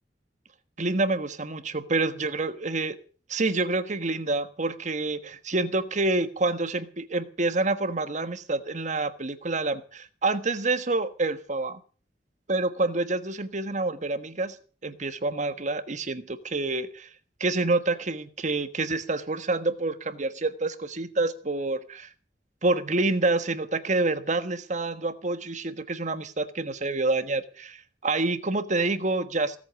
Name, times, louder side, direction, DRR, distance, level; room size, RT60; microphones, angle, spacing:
voice 1, 0.8-3.0 3.3-11.8 12.5-14.6 14.8-17.1 17.4-22.1 22.6-29.6, right 2 dB, 45° right, 12 dB, 1.4 m, -27 dB
17.5 x 8.5 x 8.2 m, 0.40 s
head